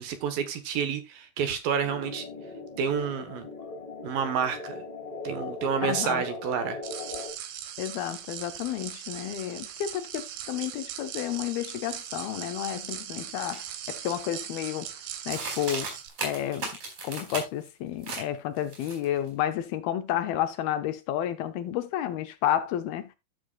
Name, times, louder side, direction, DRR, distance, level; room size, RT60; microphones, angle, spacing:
voice 1, 0.0-2.2 2.8-3.5 4.0-4.8 5.2-6.8, right 7 dB, 65° right, 2.9 m, -29 dB
sound 1, 1.8-7.3, left 3 dB, 10° left, 2.4 m, -39 dB
voice 2, 5.8-6.2 7.8-14.9 15.3-16.0 16.2-16.7 17.0-23.2, left 11 dB, 75° left, 2.6 m, -31 dB
sound 2, 6.8-16.1, right 10 dB, 85° right, 3.4 m, -39 dB
sound 3, 13.5-13.6 14.1-14.5 15.3-17.7 18.0-18.3 18.6-19.3, right 4 dB, 50° right, 5.8 m, -36 dB
14.0 x 7.0 x 2.4 m
omnidirectional pair, 4.7 m